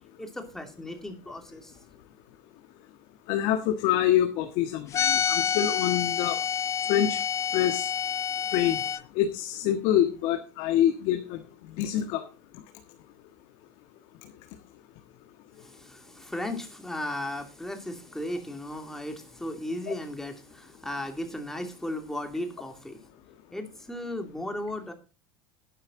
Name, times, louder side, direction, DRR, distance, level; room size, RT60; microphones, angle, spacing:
voice 1, 0.2-1.8 15.5-23.1 23.5-24.9, left 1 dB, 5° left, 2.6 m, -36 dB
voice 2, 3.3-6.3 6.9-7.2 7.5-7.8 8.5-8.8 9.1-11.4 11.8-12.2, left 11 dB, 60° left, 1.7 m, -25 dB
sound 1, 4.9-9.0, left 8 dB, 30° left, 0.7 m, -28 dB
12.0 x 11.0 x 3.8 m
supercardioid pair, 140°, 11 cm